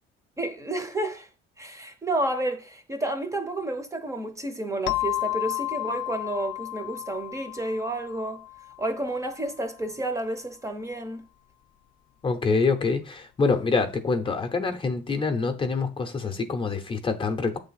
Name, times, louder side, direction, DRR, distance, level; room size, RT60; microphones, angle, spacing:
voice 1, 0.4-1.3 1.6-8.4 8.8-11.2, right 1 dB, 15° right, 0.7 m, -30 dB
sound 1, 4.9-9.3, left 18 dB, 65° left, 0.4 m, -32 dB
voice 2, 12.2-17.6, left 4 dB, 25° left, 0.7 m, -26 dB
8.2 x 3.4 x 5.6 m
cardioid pair, 160°, 21 cm